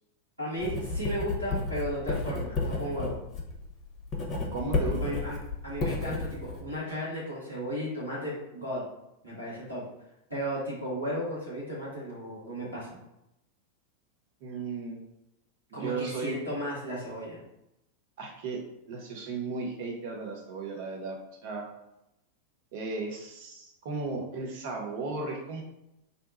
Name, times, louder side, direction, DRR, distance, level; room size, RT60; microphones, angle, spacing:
voice 1, 0.4-3.2 5.0-5.4 5.6-8.8 9.2-9.8 10.3-13.0 15.7-17.4, equal, 90° right, -8 dB, 1.3 m, -34 dB
Writing, 0.6-6.6, left 3 dB, 30° left, 0.7 m, -32 dB
voice 2, 4.5-5.2 14.4-15.0 15.7-16.4 18.2-18.6 18.9-21.2 21.4-21.7 22.7-25.6, right 3 dB, 50° right, 0 dB, 0.6 m, -35 dB
2.7 x 2.2 x 3.9 m, 0.86 s
figure-of-eight pair, 90°, 0 cm